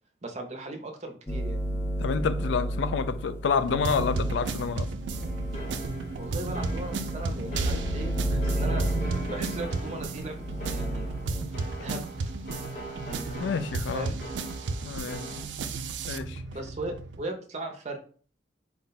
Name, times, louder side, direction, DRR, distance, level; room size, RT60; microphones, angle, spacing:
voice 1, 0.2-1.6 6.2-11.1 11.8-12.1 13.9-14.2 16.5-18.0, right 2 dB, 40° right, 0.6 m, -37 dB
sound 1, 1.3-11.4, right 1 dB, 15° left, 0.6 m, -32 dB
voice 2, 2.0-4.9 13.4-14.1 14.8-15.4 16.1-16.4, left 5 dB, 80° left, 0.4 m, -28 dB
sound 2, 3.6-17.2, right 3 dB, 85° right, 0.4 m, -34 dB
sound 3, 5.1-15.4, right 1 dB, 50° left, 1.1 m, -42 dB
4.6 x 2.2 x 3.9 m
head